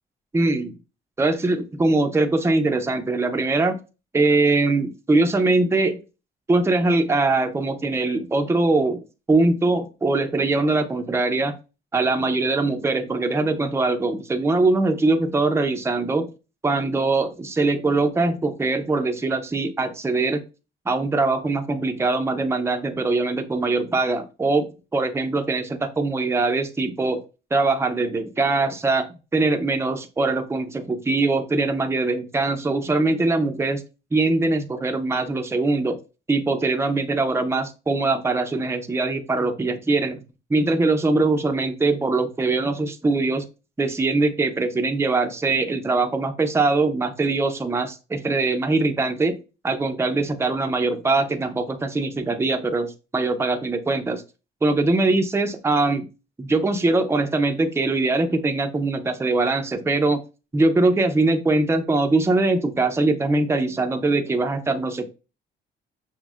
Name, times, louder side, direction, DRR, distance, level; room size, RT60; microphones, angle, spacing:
voice 1, 0.3-0.7 1.2-3.8 4.1-6.0 6.5-11.5 11.9-16.3 16.6-20.4 20.9-24.7 24.9-27.2 27.5-33.8 34.1-36.0 36.3-40.2 40.5-43.5 43.8-49.4 49.6-54.2 54.6-56.1 56.4-60.2 60.5-65.1, right 3 dB, 15° right, 6 dB, 0.5 m, -22 dB
5.9 x 2.1 x 2.4 m, 0.30 s
cardioid pair, 90°, 20 cm